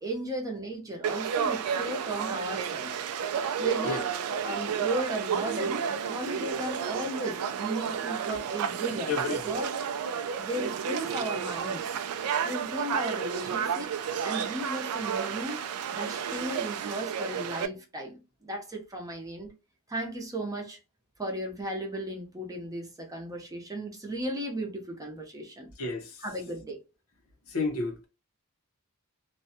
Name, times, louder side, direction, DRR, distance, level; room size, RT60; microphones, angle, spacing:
voice 1, 0.0-3.0 3.6-4.1 4.4-9.7 10.4-11.8 12.3-15.6 15.9-19.5 19.9-20.8 21.2-25.7 26.2-26.8, right 1 dB, 15° right, 0.6 m, -35 dB
Conversation / Crowd, 1.0-17.7, right 7 dB, 75° right, 0.3 m, -31 dB
voice 2, 9.1-9.4 25.8-26.2 27.5-28.1, left 3 dB, 70° left, 0.8 m, -31 dB
2.5 x 2.2 x 2.6 m
head